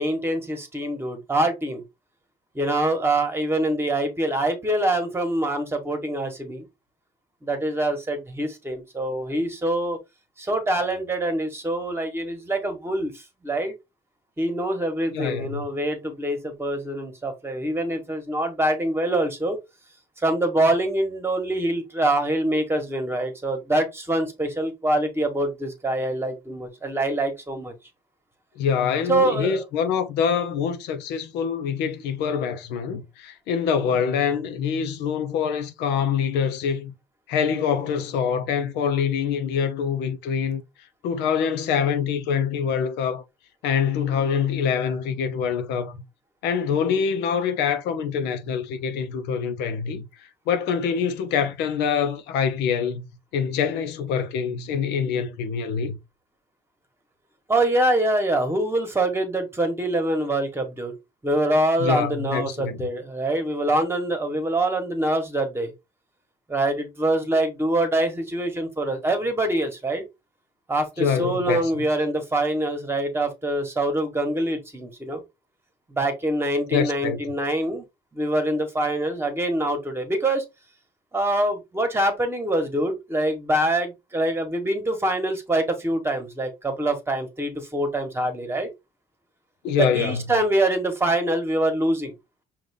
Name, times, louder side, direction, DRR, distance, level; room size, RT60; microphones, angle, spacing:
voice 1, 0.0-1.8 2.5-6.6 7.4-10.0 10.4-13.7 14.4-19.6 20.2-27.7 29.1-29.6 57.5-60.9 61.2-65.7 66.5-70.0 70.7-75.2 75.9-77.8 78.1-80.4 81.1-88.7 89.8-92.1, right 1 dB, 15° right, 1.4 m, -25 dB
voice 2, 15.1-15.6 28.6-36.9 37.3-40.6 41.0-43.2 43.6-46.0 46.4-50.1 50.5-53.1 53.3-56.0 61.8-62.9 71.0-71.6 76.7-77.2 89.6-90.2, left 7 dB, 90° left, 0.7 m, -25 dB
5.4 x 2.5 x 3.5 m
cardioid pair, 110°, 17 cm